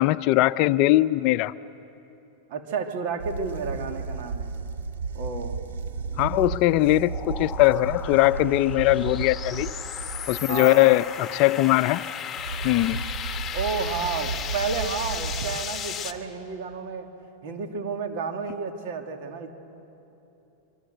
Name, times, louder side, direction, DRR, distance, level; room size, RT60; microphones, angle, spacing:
voice 1, 0.0-1.5 6.2-9.7 10.3-12.0 12.6-13.0, left 17 dB, 50° left, 14 dB, 0.5 m, -20 dB
voice 2, 2.5-4.5 5.1-5.6 10.5-11.0 13.5-17.1 17.4-19.5, right 5 dB, 60° right, 4 dB, 2.5 m, -31 dB
sound 1, 3.2-10.6 12.4-15.8, right 4 dB, 80° right, 1.2 m, -34 dB
sound 2, 5.6-16.1, left 8 dB, 25° left, 1.5 m, -36 dB
24.5 x 24.0 x 7.9 m, 3.0 s
hypercardioid pair, 110°, 0 cm